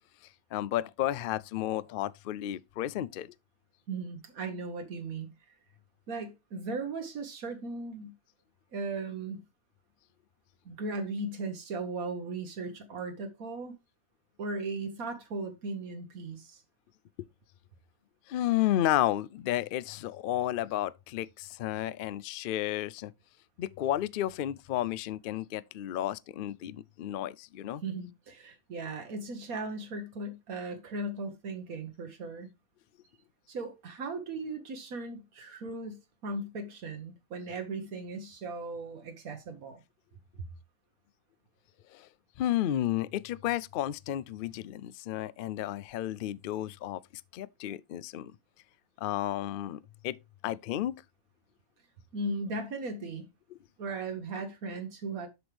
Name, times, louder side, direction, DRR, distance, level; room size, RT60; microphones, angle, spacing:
voice 1, 0.5-3.3 18.3-23.1 23.6-27.8 41.9-42.1 42.4-47.0 47.3-48.3 49.0-50.2 50.4-50.9 53.5-53.6, left 13 dB, 90° left, 0.4 m, -32 dB
voice 2, 3.9-5.3 6.1-8.1 8.7-9.4 10.6-13.7 14.4-16.6 27.8-32.5 33.5-39.8 40.4-40.5 52.1-53.3 53.8-55.3, right 3 dB, 85° right, 1.6 m, -37 dB
7.8 x 6.2 x 3.3 m
omnidirectional pair, 1.5 m